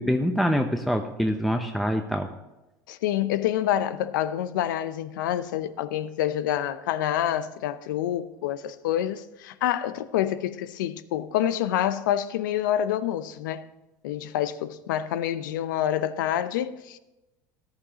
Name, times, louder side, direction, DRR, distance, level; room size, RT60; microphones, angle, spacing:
voice 1, 0.0-2.3, equal, ahead, 0.7 m, -25 dB
voice 2, 2.9-13.6 14.0-17.0, left 11 dB, 80° left, 0.7 m, -27 dB
14.0 x 11.5 x 2.9 m
hypercardioid pair, 90°, 10 cm